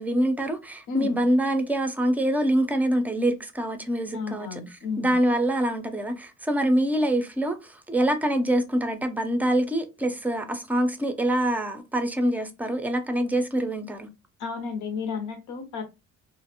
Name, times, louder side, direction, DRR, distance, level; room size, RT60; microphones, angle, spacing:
voice 1, 0.0-14.1, right 1 dB, 5° right, 0.4 m, -25 dB
voice 2, 0.9-1.2 4.1-5.1 14.4-15.8, left 5 dB, 85° left, 0.7 m, -32 dB
2.4 x 2.0 x 2.7 m
cardioid pair, 90°, 30 cm